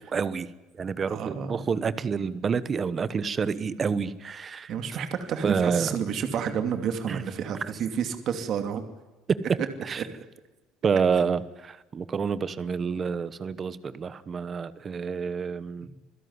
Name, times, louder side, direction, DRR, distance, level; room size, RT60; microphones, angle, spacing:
voice 1, 0.1-0.5 0.8-4.7 5.4-6.0 7.1-7.2 9.9-10.0 10.8-15.9, right 6 dB, 20° right, 15 dB, 1.1 m, -28 dB
voice 2, 1.1-1.6 4.7-8.8 10.0-10.1 15.8-15.9, right 7 dB, 40° right, 7 dB, 2.6 m, -30 dB
27.0 x 16.5 x 9.7 m, 1.1 s
cardioid pair, 170°, 0 cm